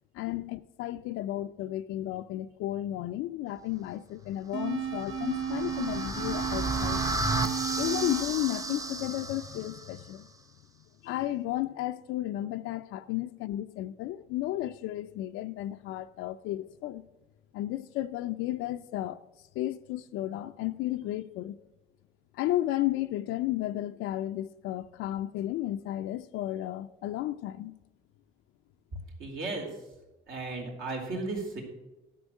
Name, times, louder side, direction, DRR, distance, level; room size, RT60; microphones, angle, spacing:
voice 1, 0.1-7.4 7.7-10.3 11.0-17.0 17.5-19.2 19.6-21.6 22.3-27.7, left 14 dB, 85° left, 0.4 m, -33 dB
sound 1, 4.5-9.6, right 8 dB, 85° right, 1.2 m, -35 dB
sound 2, 4.8-9.9, right 2 dB, 15° right, 0.6 m, -33 dB
voice 2, 29.2-29.7 30.3-31.6, right 3 dB, 70° right, 3.0 m, -35 dB
11.5 x 6.2 x 6.3 m
cardioid pair, 125°, 21 cm